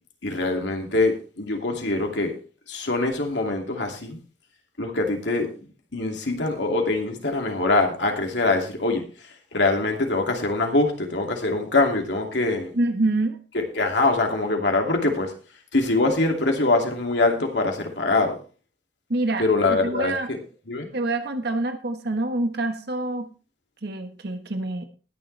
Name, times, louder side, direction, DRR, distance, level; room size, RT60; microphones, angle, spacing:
voice 1, 0.2-2.3 2.7-4.2 4.8-5.5 5.9-9.0 9.5-12.7 13.5-15.3 15.7-18.3 19.4-20.4 20.7-20.9, left 2 dB, 70° left, 2 dB, 2.6 m, -23 dB
voice 2, 12.7-13.4 19.1-20.3 20.9-23.3 23.8-24.8, right 2 dB, 60° right, 7 dB, 1.4 m, -26 dB
19.5 x 7.0 x 3.3 m, 0.37 s
head